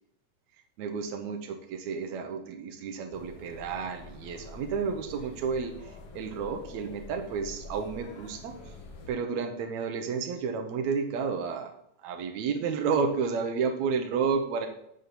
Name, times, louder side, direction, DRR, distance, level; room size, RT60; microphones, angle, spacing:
voice 1, 0.8-8.6 9.1-11.8 12.0-14.7, right 5 dB, 70° right, 5 dB, 1.8 m, -31 dB
sound 1, 3.1-9.1, left 2 dB, 75° left, 3.1 m, -47 dB
7.9 x 4.2 x 6.8 m, 0.73 s
omnidirectional pair, 4.0 m